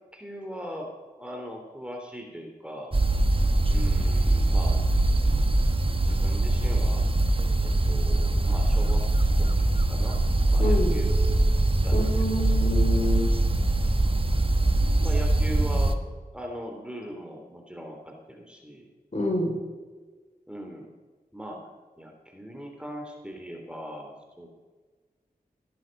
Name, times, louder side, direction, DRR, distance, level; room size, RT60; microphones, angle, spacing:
voice 1, 0.1-2.9 3.7-4.8 5.2-5.6 6.0-7.0 7.6-9.0 9.4-9.6 9.9-10.2 10.5-11.5 11.8-12.5 15.0-15.9 16.3-18.8 20.5-20.9 21.3-21.7 22.0-24.5, equal, 5° right, 2 dB, 3.4 m, -40 dB
sound 1, 2.9-15.9, right 2 dB, 35° right, 1.3 m, -22 dB
voice 2, 10.6-11.0 11.9-13.3 15.7-15.8 19.1-19.6, left 1 dB, 45° left, 0 dB, 5.5 m, -28 dB
17.0 x 11.0 x 5.5 m, 1.4 s
cardioid pair, 45°, 16 cm